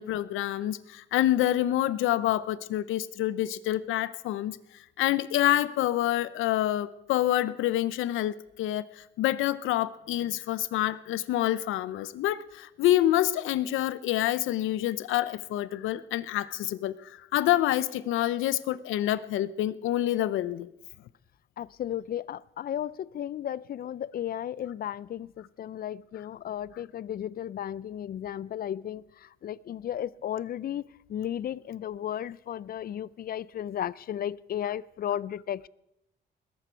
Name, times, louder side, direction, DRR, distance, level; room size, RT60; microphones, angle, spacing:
voice 1, 0.0-4.6 5.0-20.7, left 13 dB, 85° left, 0.7 m, -27 dB
voice 2, 21.6-35.7, left 10 dB, 50° left, 0.4 m, -34 dB
20.5 x 11.0 x 4.5 m
cardioid pair, 90°, 20 cm